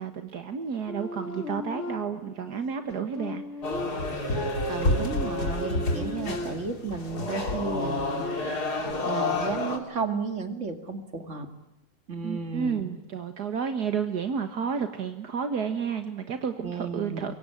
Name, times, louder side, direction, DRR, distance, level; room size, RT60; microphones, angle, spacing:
voice 1, 0.0-3.4 12.2-17.3, right 6 dB, 70° right, 8 dB, 2.0 m, -31 dB
sound 1, 0.9-2.4 2.9-6.9 7.4-8.9, left 2 dB, 50° left, 1.7 m, -37 dB
sound 2, 3.6-9.8, left 2 dB, 70° left, 3.5 m, -29 dB
voice 2, 4.7-8.2 9.0-11.5 12.1-12.8 16.6-17.3, right 4 dB, 45° right, 7 dB, 2.8 m, -33 dB
25.5 x 22.5 x 9.3 m, 0.86 s
omnidirectional pair, 1.8 m